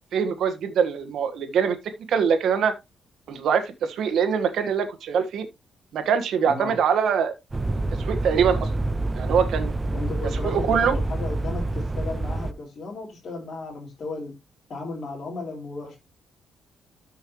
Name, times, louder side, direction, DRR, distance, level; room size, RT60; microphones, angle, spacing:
voice 1, 0.1-1.8 2.1-2.7 3.3-5.5 5.9-7.3 8.1-8.7 9.1-9.7 10.4-11.0, right 7 dB, 70° right, 1.4 m, -23 dB
voice 2, 6.5-6.8 9.9-14.3 14.7-16.0, left 3 dB, 40° left, 3.2 m, -35 dB
sound 1, 7.5-12.5, right 2 dB, 20° right, 0.5 m, -27 dB
13.0 x 5.5 x 3.0 m
cardioid pair, 145°, 0 cm